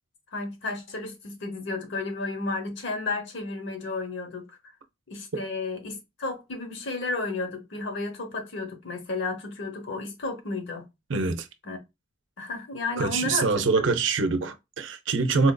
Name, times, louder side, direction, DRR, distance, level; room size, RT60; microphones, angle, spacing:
voice 1, 0.3-4.6 5.1-10.9 11.6-11.8 12.4-13.7, left 3 dB, 60° left, 0.9 m, -32 dB
voice 2, 11.1-11.5 13.0-15.5, right 4 dB, 65° right, 0.5 m, -24 dB
4.2 x 2.5 x 2.2 m
head